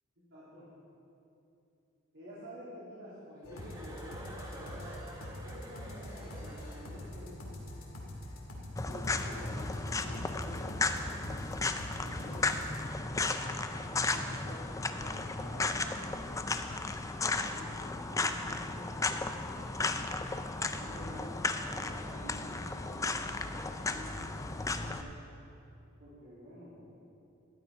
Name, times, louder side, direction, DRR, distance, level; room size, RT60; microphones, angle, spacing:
voice 1, 0.3-0.7 2.1-5.0 5.4-7.5 8.8-12.6 13.0-16.4 17.0-20.1 20.7-25.1 26.0-26.9, equal, 65° right, -11 dB, 3.3 m, -49 dB
sound 1, 3.4-12.8, left 1 dB, 75° left, 2.0 m, -45 dB
Chuckle chortle, 3.5-7.2, right 1 dB, 15° right, 1.4 m, -48 dB
sound 2, 8.8-25.0, left 3 dB, 15° left, 0.4 m, -34 dB
12.5 x 9.7 x 4.9 m, 2.7 s
head